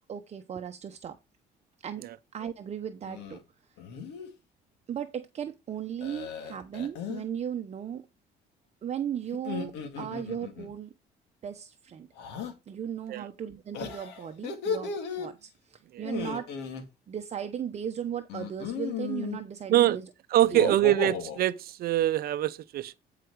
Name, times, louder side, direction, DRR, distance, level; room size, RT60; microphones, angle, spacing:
voice 1, 0.1-1.2 1.8-2.0 2.3-3.4 4.9-8.0 8.8-10.9 11.4-12.1 12.7-16.5 17.1-20.1 20.5-20.8, right 9 dB, 40° right, 0.9 m, -36 dB
sound 1, 3.1-3.4 3.8-4.3 6.0-7.3 9.3-10.7 12.2-12.5 13.7-15.3 16.0-16.8 18.3-19.4 20.4-21.4, left 6 dB, 85° left, 2.2 m, -35 dB
voice 2, 20.3-23.0, right 13 dB, 65° right, 0.6 m, -24 dB
11.0 x 5.0 x 4.7 m
cardioid pair, 110°, 17 cm